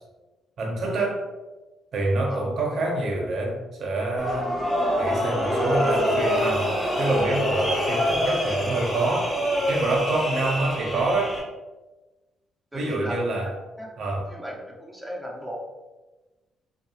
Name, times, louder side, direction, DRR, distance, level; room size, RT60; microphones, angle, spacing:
voice 1, 0.6-1.2 1.9-4.5 5.0-6.7 7.0-9.3 9.7-11.4 12.7-13.5 14.0-14.3, right 2 dB, 60° right, 0 dB, 0.7 m, -26 dB
sound 1, 4.2-11.4, equal, 15° left, 1.3 m, -25 dB
voice 2, 12.7-13.9 14.3-15.6, right 1 dB, 5° right, -2 dB, 0.6 m, -36 dB
2.8 x 2.3 x 2.3 m, 1.2 s
cardioid pair, 90°, 0 cm